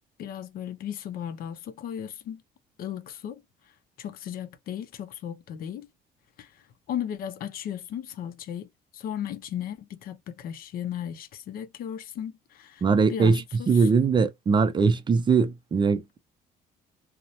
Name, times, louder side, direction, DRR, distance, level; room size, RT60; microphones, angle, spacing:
voice 1, 0.2-2.4 2.8-3.4 4.0-5.9 6.4-6.5 6.9-12.8 13.1-13.9, left 9 dB, 60° left, 0.5 m, -36 dB
voice 2, 12.8-16.2, right 5 dB, 25° right, 0.4 m, -21 dB
2.8 x 2.0 x 2.4 m
cardioid pair, 110°, 17 cm